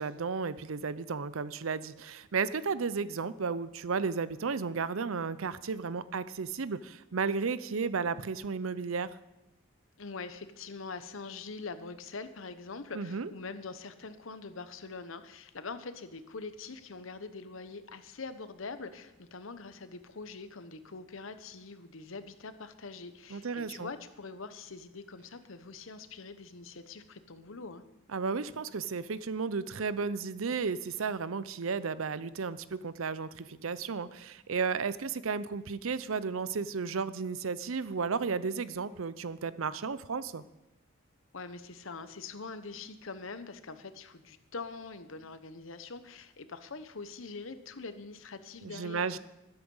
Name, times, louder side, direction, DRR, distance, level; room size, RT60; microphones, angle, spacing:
voice 1, 0.0-9.1 12.9-13.3 23.3-23.9 28.1-40.4 48.6-49.2, right 5 dB, 85° right, 16 dB, 0.6 m, -33 dB
voice 2, 10.0-27.8 41.3-49.2, left 4 dB, 80° left, 11 dB, 1.0 m, -44 dB
13.0 x 11.5 x 5.5 m, 0.94 s
head